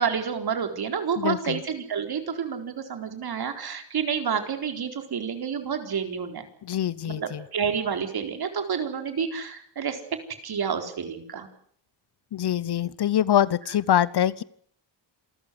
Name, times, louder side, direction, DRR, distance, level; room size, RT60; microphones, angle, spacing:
voice 1, 0.0-6.4 7.1-10.0 10.4-11.5, right 7 dB, 55° right, 7 dB, 4.4 m, -29 dB
voice 2, 1.2-1.6 6.6-7.4 12.3-14.4, left 10 dB, 60° left, 20 dB, 1.0 m, -24 dB
27.5 x 14.0 x 9.6 m, 0.62 s
wide cardioid pair, 160°, 44 cm